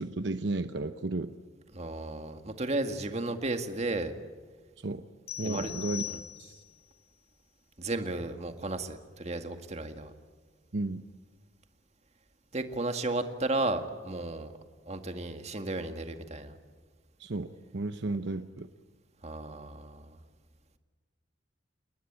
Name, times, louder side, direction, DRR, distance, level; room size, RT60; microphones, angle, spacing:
voice 1, 0.0-1.3 4.8-5.0 5.4-6.0 6.4-6.6 10.7-11.0 17.2-18.7, right 2 dB, 65° right, 9 dB, 0.9 m, -33 dB
voice 2, 1.7-4.1 5.4-5.7 6.1-6.2 7.8-10.1 12.5-14.5 14.9-16.6 19.2-20.2, right 2 dB, 35° right, 7 dB, 1.9 m, -34 dB
sound 1, 5.3-6.8, left 11 dB, 55° left, 2.2 m, -40 dB
28.5 x 20.0 x 8.8 m, 1.4 s
head